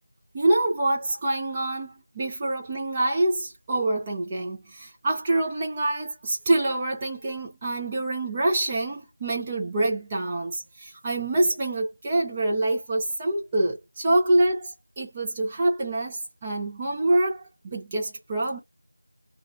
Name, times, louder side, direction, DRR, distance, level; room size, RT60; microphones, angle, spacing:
voice 1, 0.3-18.6, right 2 dB, 10° right, 0.4 m, -26 dB
2.7 x 2.2 x 3.2 m
figure-of-eight pair, 180°, 0 cm